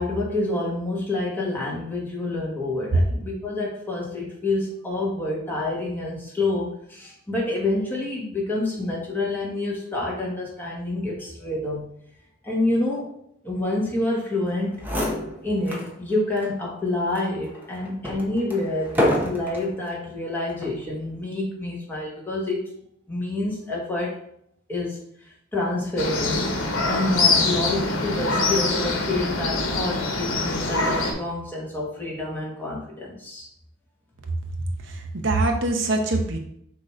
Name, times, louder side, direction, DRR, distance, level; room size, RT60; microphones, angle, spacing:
voice 1, 0.0-11.9 12.4-13.1 13.4-14.8 15.4-22.7 23.1-24.2 24.7-25.0 25.5-26.5 26.8-33.5, left 2 dB, 10° left, -4 dB, 1.5 m, -28 dB
sound 1, 14.5-14.6 14.8-15.9 16.4-16.5 17.1-19.7 20.5-20.9, left 1 dB, 10° right, 0.9 m, -27 dB
sound 2, 26.0-31.1, left 3 dB, 75° left, 1.2 m, -24 dB
voice 2, 34.6-36.4, right 2 dB, 60° right, 3 dB, 0.8 m, -24 dB
6.4 x 3.0 x 4.9 m, 0.70 s
head